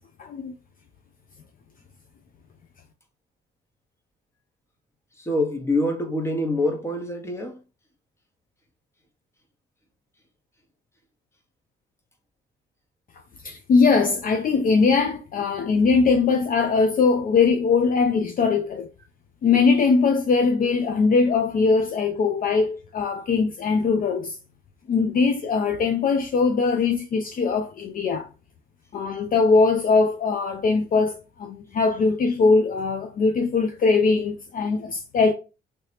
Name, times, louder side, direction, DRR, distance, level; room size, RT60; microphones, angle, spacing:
voice 1, 0.2-0.5 13.4-18.9 19.4-24.4 24.9-28.3 28.9-35.3, left 4 dB, 45° left, 0.4 m, -21 dB
voice 2, 5.2-7.6, left 1 dB, 15° left, 0.9 m, -25 dB
2.9 x 2.8 x 3.2 m
cardioid pair, 90°, 20 cm